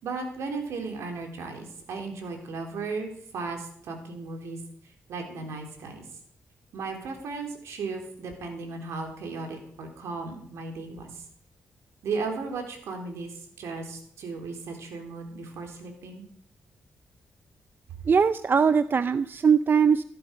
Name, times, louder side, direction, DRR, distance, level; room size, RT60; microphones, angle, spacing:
voice 1, 0.0-4.6 5.1-6.0 6.7-11.2 12.0-16.2, right 4 dB, 80° right, 3 dB, 3.9 m, -35 dB
voice 2, 18.1-20.0, right 6 dB, 45° right, 13 dB, 0.7 m, -21 dB
16.0 x 13.0 x 5.4 m, 0.65 s
cardioid pair, 65°, 5 cm